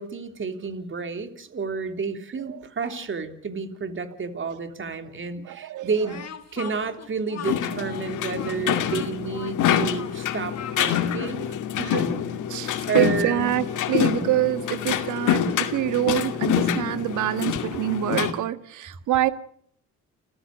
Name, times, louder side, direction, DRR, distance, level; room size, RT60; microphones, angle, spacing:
voice 1, 0.0-6.2 6.5-11.5 11.8-12.1 12.9-13.5, right 5 dB, 40° right, 8 dB, 3.2 m, -30 dB
voice 2, 2.4-3.0 5.4-6.2 6.6-6.9 7.8-8.1 12.5-19.3, right 13 dB, 80° right, 12 dB, 1.6 m, -26 dB
Speech, 6.0-11.4, left 9 dB, 55° left, 2.4 m, -40 dB
sound 1, 7.4-18.3, left 9 dB, 80° left, 2.3 m, -26 dB
29.5 x 15.0 x 6.5 m, 0.62 s
cardioid pair, 90°, 30 cm